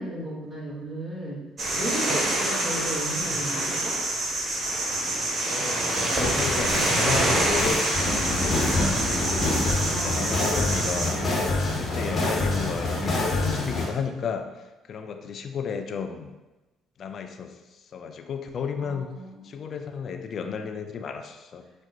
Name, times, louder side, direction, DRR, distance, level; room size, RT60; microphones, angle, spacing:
voice 1, 0.0-1.4 1.7-4.0 9.9-10.2 18.8-19.5, right 1 dB, 15° right, -3 dB, 1.4 m, -34 dB
sound 1, 1.6-11.1, right 1 dB, 40° right, 0.8 m, -26 dB
voice 2, 5.4-8.7 9.1-9.4 9.8-16.3 17.0-19.1 19.4-21.7, left 6 dB, 50° left, 6 dB, 0.4 m, -33 dB
sound 2, 5.9-13.9, left 2 dB, 30° left, 1.1 m, -27 dB
5.7 x 2.1 x 2.8 m, 1.1 s
hypercardioid pair, 50°, 0 cm